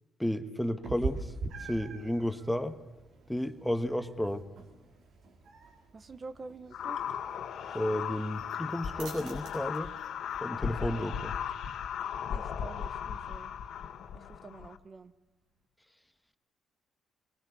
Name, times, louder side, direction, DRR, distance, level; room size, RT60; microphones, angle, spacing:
voice 1, 0.2-1.3 1.7-2.8 3.3-4.4 7.7-9.9 10.4-11.4, left 1 dB, 5° left, 10 dB, 1.2 m, -32 dB
Meow, 0.8-10.5, right 4 dB, 70° right, 3.8 m, -44 dB
voice 2, 5.9-7.0 12.3-13.5 14.1-15.1, right 3 dB, 35° right, 12 dB, 1.0 m, -47 dB
sound 1, 6.7-14.8, left 8 dB, 70° left, 1.6 m, -37 dB
sound 2, 8.4-15.7, right 4 dB, 85° right, 7.6 m, -57 dB
22.5 x 19.0 x 8.3 m, 0.99 s
cardioid pair, 90°, 0 cm